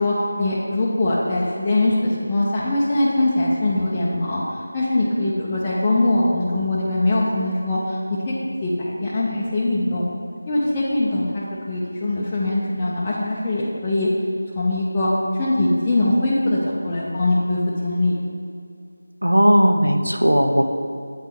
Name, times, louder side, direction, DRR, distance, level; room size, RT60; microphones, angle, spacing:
voice 1, 0.0-4.4 4.7-8.0 8.3-8.4 8.6-10.0 10.5-14.1 14.6-18.2, left 2 dB, 15° left, -7 dB, 0.5 m, -22 dB
voice 2, 19.2-20.7, equal, 85° right, 4 dB, 0.6 m, -16 dB
8.2 x 3.3 x 4.5 m, 2.2 s
figure-of-eight pair, 165°, 0 cm